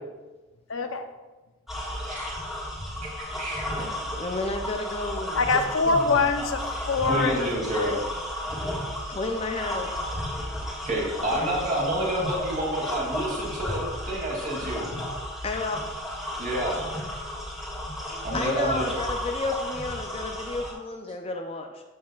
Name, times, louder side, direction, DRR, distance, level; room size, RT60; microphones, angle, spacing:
voice 1, 0.7-1.0 5.4-7.5 7.9-8.0, left 4 dB, 85° left, 6 dB, 0.7 m, -24 dB
sound 1, 1.7-20.7, left 1 dB, ahead, 1.7 m, -33 dB
voice 2, 3.2-3.8 5.9-6.0 7.1-7.9 10.8-14.8 16.4-16.8 18.2-18.9, right 1 dB, 40° right, -4 dB, 2.7 m, -28 dB
voice 3, 4.2-6.0 9.1-10.2 15.4-15.8 18.3-21.8, left 2 dB, 30° left, 4 dB, 0.5 m, -31 dB
13.5 x 6.4 x 2.4 m, 1.2 s
head